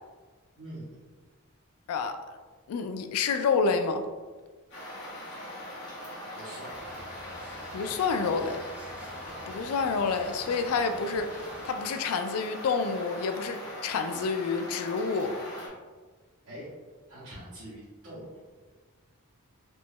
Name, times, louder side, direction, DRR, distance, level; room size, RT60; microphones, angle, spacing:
voice 1, 0.6-1.0 6.3-7.2 16.4-16.7 17.1-18.3, right 1 dB, 75° right, -13 dB, 1.4 m, -44 dB
voice 2, 1.9-2.2 2.7-4.0 7.7-8.6 9.5-15.4, left 5 dB, 75° left, 7 dB, 0.3 m, -28 dB
sound 1, 4.7-15.7, left 1 dB, 50° left, 1.4 m, -41 dB
sound 2, 6.7-11.7, equal, 5° right, 0.3 m, -49 dB
4.4 x 3.0 x 2.2 m, 1.4 s
head